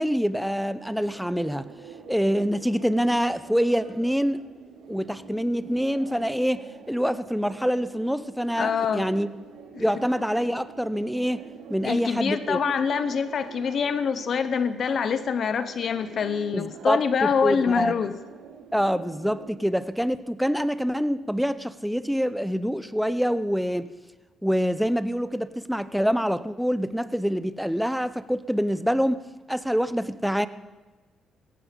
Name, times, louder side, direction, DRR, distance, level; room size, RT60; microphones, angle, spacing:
voice 1, 0.0-1.7 2.1-4.5 4.9-9.3 9.8-12.6 16.5-17.9 18.7-23.9 24.4-30.5, equal, ahead, 14 dB, 0.7 m, -26 dB
sound 1, 0.7-19.5, right 6 dB, 85° right, 2.5 m, -46 dB
voice 2, 8.6-9.1 9.7-9.8 11.8-18.1, left 6 dB, 55° left, 12 dB, 0.9 m, -25 dB
17.0 x 14.5 x 5.3 m, 1.3 s
cardioid pair, 90°, 0 cm